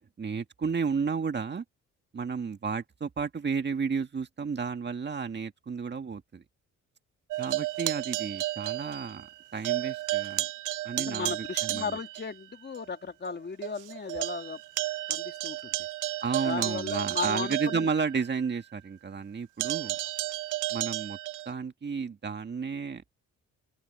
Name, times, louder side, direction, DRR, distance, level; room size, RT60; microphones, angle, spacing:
voice 1, 0.2-1.6 2.1-6.4 7.4-9.3 9.5-10.5 10.8-11.4 11.6-11.8 16.2-20.0 20.7-21.2 21.5-23.0, right 5 dB, 35° right, 2.0 m, -32 dB
sound 1, 7.3-9.4 9.6-12.3 12.8-12.9 13.3-13.4 13.6-18.4 19.6-21.5, right 17 dB, 85° right, 0.7 m, -33 dB
voice 2, 11.0-14.6 15.1-15.8 16.4-17.9, left 5 dB, 35° left, 2.5 m, -36 dB
open air
cardioid pair, 90°, 30 cm